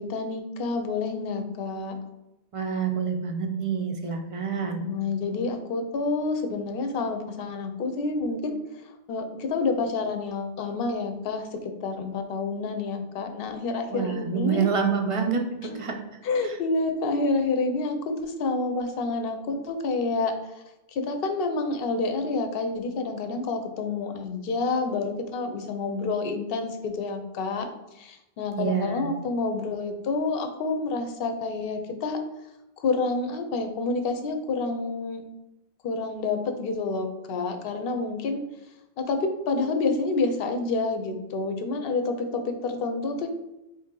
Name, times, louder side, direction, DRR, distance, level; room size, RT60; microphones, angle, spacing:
voice 1, 0.0-1.9 4.8-8.6 9.1-14.7 15.6-15.8 16.2-20.3 20.9-27.7 28.0-32.2 32.8-35.2 35.8-38.4 39.0-43.3, left 3 dB, 65° left, 6 dB, 0.8 m, -28 dB
voice 2, 2.5-4.8 13.9-16.0 16.4-16.6 28.5-29.1, right 6 dB, 50° right, 3 dB, 0.4 m, -27 dB
4.2 x 2.7 x 3.7 m, 0.95 s
omnidirectional pair, 1.1 m